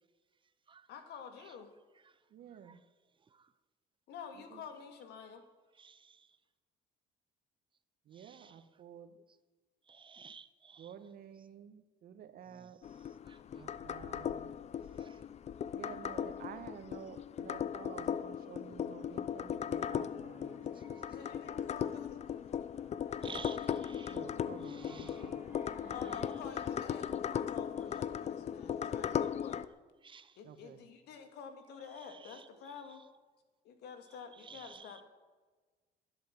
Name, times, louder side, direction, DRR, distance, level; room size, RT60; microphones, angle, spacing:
voice 1, 0.9-1.7 4.1-5.4 21.1-22.2 25.1-25.4 25.9-29.6 30.4-33.0 33.6-35.0, left 6 dB, 80° left, 2.2 m, -49 dB
voice 2, 2.3-2.8 4.3-4.7 4.9-5.1 8.0-9.2 10.8-12.8 13.5-14.6 15.7-20.6 24.1-25.4 30.4-30.9, right 8 dB, 60° right, 1.4 m, -51 dB
voice 3, 5.8-6.3 8.1-8.6 9.9-10.9 12.5-12.7 13.2-13.4 14.9-15.2 20.7-20.8 23.2-24.2 24.7-25.2 25.8-25.9 30.0-30.4 32.0-32.5 34.3-35.0, right 6 dB, 30° right, 0.7 m, -53 dB
sound 1, 12.8-29.6, left 8 dB, 40° left, 0.5 m, -38 dB
sound 2, 20.0-26.9, right 1 dB, 10° right, 2.2 m, -59 dB
12.0 x 11.5 x 7.5 m
cardioid pair, 110°, 17 cm